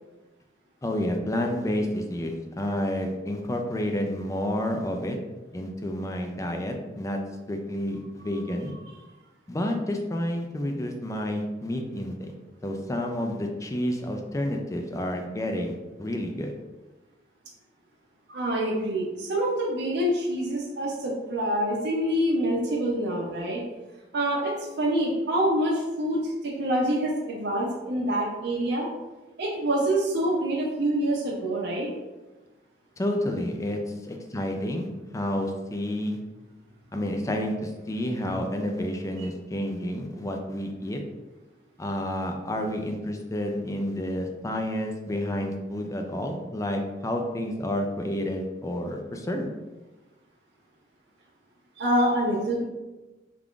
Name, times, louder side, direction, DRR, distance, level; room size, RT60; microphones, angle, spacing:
voice 1, 0.8-5.2 5.5-7.2 7.5-8.7 9.5-12.3 12.6-16.5 33.0-34.9 35.1-36.2 36.9-41.0 41.8-49.5, left 1 dB, 15° left, 3 dB, 0.4 m, -30 dB
voice 2, 18.3-23.6 24.1-28.9 29.4-31.9 51.8-52.6, right 1 dB, 65° right, -4 dB, 0.6 m, -26 dB
3.4 x 2.4 x 3.6 m, 1.1 s
head